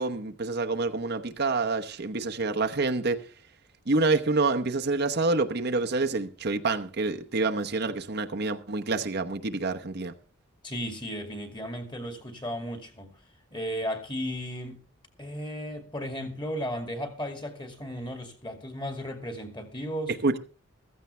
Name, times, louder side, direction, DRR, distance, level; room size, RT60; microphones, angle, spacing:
voice 1, 0.0-3.2 3.9-10.1 20.2-20.4, right 3 dB, 50° right, 0.9 m, -27 dB
voice 2, 10.6-13.1 13.5-14.8 15.2-20.2, equal, 20° left, 2.3 m, -35 dB
15.0 x 14.5 x 3.3 m
head